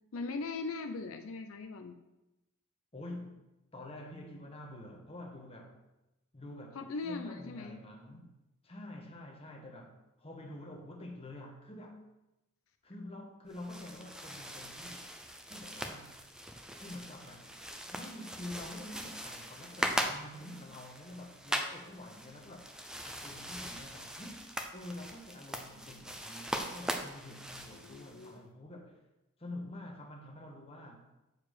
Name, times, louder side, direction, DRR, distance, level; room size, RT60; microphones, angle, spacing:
voice 1, 0.1-2.0 6.7-7.8 27.7-28.4, left 3 dB, 80° left, 0.6 m, -40 dB
voice 2, 2.9-3.4 3.7-5.7 6.3-8.3 8.6-12.0 12.8-15.1 15.4-16.2 16.8-17.6 17.9-22.7 23.0-29.0 29.4-31.0, left 1 dB, 30° left, 1.2 m, -47 dB
sound 1, 13.5-28.3, equal, 5° right, 0.6 m, -40 dB
6.8 x 4.7 x 6.6 m
head